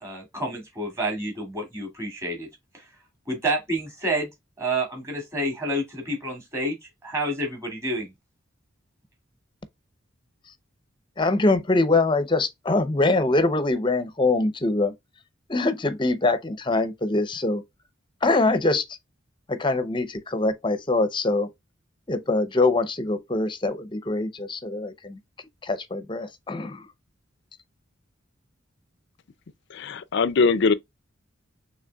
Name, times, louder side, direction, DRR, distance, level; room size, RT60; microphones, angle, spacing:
voice 1, 0.0-2.5 2.7-2.8 3.3-4.3 4.6-8.1, right 1 dB, 15° right, 2.3 m, -29 dB
voice 2, 11.2-14.9 15.5-17.6 18.2-18.8 19.5-21.5 22.1-25.2 25.6-26.8, left 2 dB, 25° left, 0.7 m, -23 dB
voice 3, 29.7-30.7, left 4 dB, 60° left, 0.5 m, -21 dB
6.4 x 3.3 x 2.3 m
head